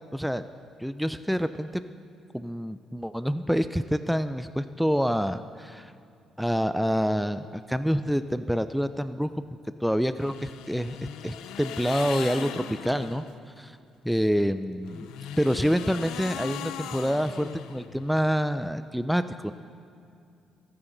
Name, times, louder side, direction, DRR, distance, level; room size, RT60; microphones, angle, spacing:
voice 1, 0.1-0.4 0.8-1.8 2.3-5.9 6.4-9.4 9.8-11.0 11.2-13.2 13.6-13.8 14.0-15.1 15.4-19.5, equal, ahead, 11 dB, 0.4 m, -27 dB
sound 1, 10.2-13.3 14.8-18.1, left 10 dB, 90° left, 0.5 m, -39 dB
24.5 x 9.8 x 3.9 m, 2.5 s
cardioid pair, 90°, 0 cm